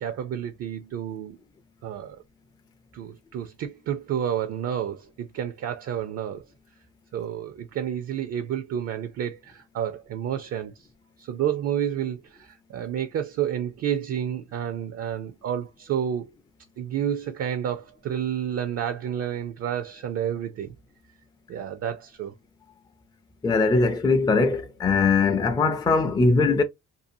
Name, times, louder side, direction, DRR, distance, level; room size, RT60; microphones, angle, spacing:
voice 1, 0.0-1.4 1.8-2.2 2.9-6.4 7.1-10.9 11.2-16.3 16.8-20.7 21.5-22.3, right 9 dB, 55° right, 0.4 m, -30 dB
voice 2, 23.4-26.6, left 3 dB, 15° left, 0.4 m, -21 dB
2.7 x 2.3 x 2.6 m
cardioid pair, 90°, 30 cm